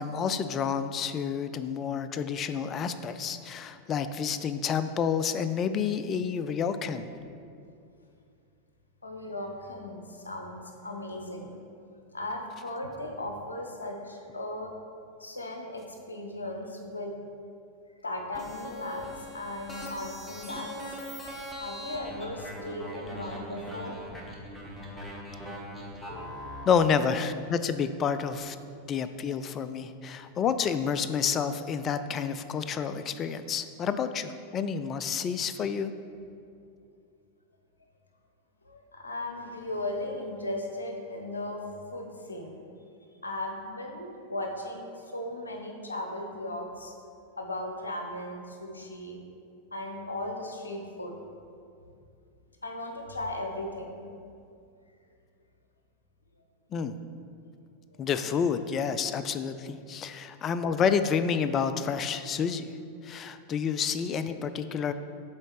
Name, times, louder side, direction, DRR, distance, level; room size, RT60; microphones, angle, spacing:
voice 1, 0.0-7.1 26.7-28.6 28.9-35.9 56.7-56.9 58.0-62.7 63.0-64.9, left 6 dB, 30° left, 11 dB, 0.3 m, -29 dB
voice 2, 9.0-11.5 12.1-14.7 15.2-17.1 18.0-19.1 19.3-21.0 21.6-24.0 38.7-41.6 41.9-42.6 43.2-46.9 47.4-49.2 49.7-51.2 52.6-54.0 57.9-58.0, left 1 dB, 75° left, 2 dB, 0.8 m, -37 dB
sound 1, 18.3-26.6, equal, 5° left, 1.1 m, -41 dB
7.3 x 4.1 x 4.7 m, 2.5 s
figure-of-eight pair, 90°, 0 cm